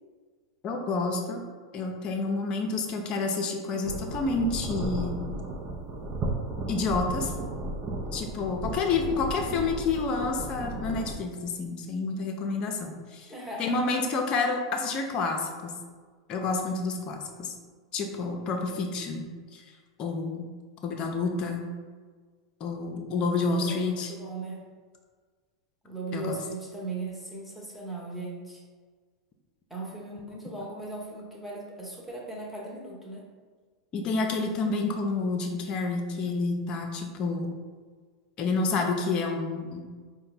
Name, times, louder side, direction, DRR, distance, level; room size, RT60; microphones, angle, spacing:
voice 1, 0.6-1.4 1.7-5.2 6.7-7.3 8.1-13.3 13.6-15.8 16.3-17.5 17.9-19.3 19.5-19.6 20.0-20.5 20.8-21.7 22.6-24.1 26.1-26.4 33.9-37.5 38.4-39.9, left 3 dB, 40° left, 3 dB, 0.6 m, -29 dB
sound 1, 3.8-11.1, right 2 dB, 25° right, 0.7 m, -34 dB
voice 2, 13.3-13.8 23.5-24.6 25.8-28.6 29.7-33.3, right 2 dB, ahead, -4 dB, 1.1 m, -38 dB
4.3 x 2.2 x 4.0 m, 1.5 s
hypercardioid pair, 95°, 3 cm